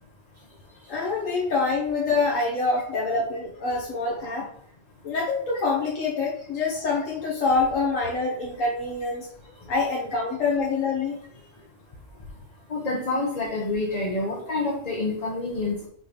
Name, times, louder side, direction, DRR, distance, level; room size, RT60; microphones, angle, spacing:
voice 1, 0.9-4.5 5.0-9.3 9.7-11.2, left 3 dB, 90° left, -3 dB, 1.4 m, -26 dB
voice 2, 12.7-15.9, left 2 dB, 35° left, -2 dB, 0.9 m, -27 dB
6.2 x 3.2 x 5.1 m, 0.64 s
omnidirectional pair, 1.3 m